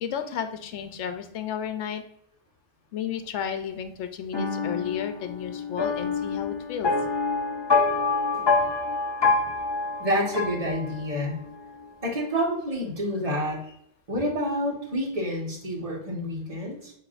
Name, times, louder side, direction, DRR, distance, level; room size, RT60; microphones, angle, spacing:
voice 1, 0.0-2.0 2.9-6.9, left 8 dB, 75° left, 7 dB, 0.9 m, -33 dB
sound 1, 4.3-11.3, left 4 dB, 30° left, 0.5 m, -26 dB
voice 2, 10.0-11.4 12.0-13.6 14.1-16.9, equal, 30° right, -3 dB, 1.4 m, -28 dB
6.8 x 2.9 x 2.4 m, 0.72 s
omnidirectional pair, 1.3 m